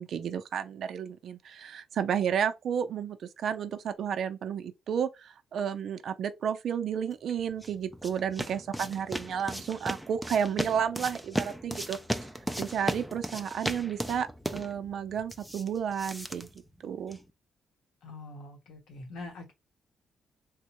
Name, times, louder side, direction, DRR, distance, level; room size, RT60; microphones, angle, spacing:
voice 1, 0.0-12.0 12.6-16.5 16.8-17.2, right 8 dB, 60° right, 0.5 m, -32 dB
sound 1, 7.3-17.3, equal, ahead, 0.3 m, -37 dB
voice 2, 18.0-19.5, left 2 dB, 90° left, 1.2 m, -44 dB
3.5 x 2.1 x 2.9 m
cardioid pair, 140°, 0 cm